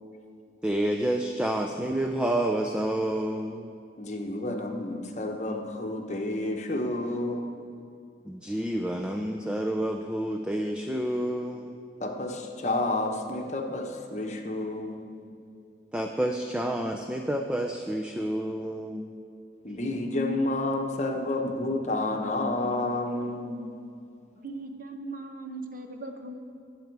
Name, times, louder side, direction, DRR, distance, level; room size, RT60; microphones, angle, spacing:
voice 1, 0.6-3.7 8.2-11.7 15.9-19.1, right 1 dB, 5° right, 2 dB, 0.5 m, -29 dB
voice 2, 4.0-7.5 12.0-15.2 19.6-23.7, left 2 dB, 40° left, 3 dB, 1.1 m, -30 dB
voice 3, 24.4-26.4, right 2 dB, 50° right, 5 dB, 1.0 m, -39 dB
20.0 x 7.9 x 4.7 m, 2.4 s
head